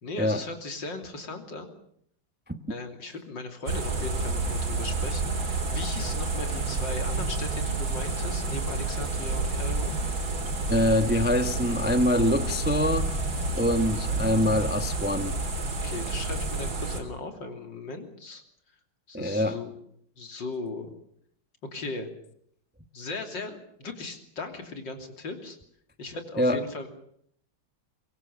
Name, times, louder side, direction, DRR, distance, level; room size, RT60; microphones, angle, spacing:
voice 1, 0.0-1.7 2.7-9.9 15.8-18.4 19.1-19.7 20.2-20.9 21.6-22.1 22.9-25.6 26.0-26.9, left 3 dB, 65° left, 5 dB, 3.7 m, -37 dB
sound 1, 3.7-17.0, right 3 dB, 80° right, 4.4 m, -29 dB
voice 2, 10.7-13.1 13.5-15.4 19.1-19.6 26.4-26.6, left 1 dB, 10° right, 9 dB, 0.7 m, -24 dB
24.0 x 22.0 x 7.3 m, 0.68 s
omnidirectional pair, 2.1 m